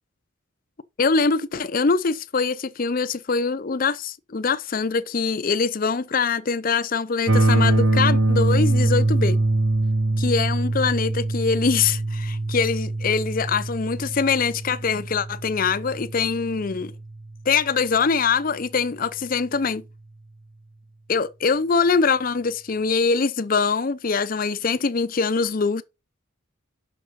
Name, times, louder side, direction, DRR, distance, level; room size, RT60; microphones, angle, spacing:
voice 1, 1.0-9.4 10.2-16.9 17.5-19.8 21.1-25.8, left 5 dB, 40° left, 0.5 m, -23 dB
sound 1, 7.3-17.2, right 2 dB, 75° right, 1.2 m, -23 dB
6.3 x 6.0 x 5.5 m
head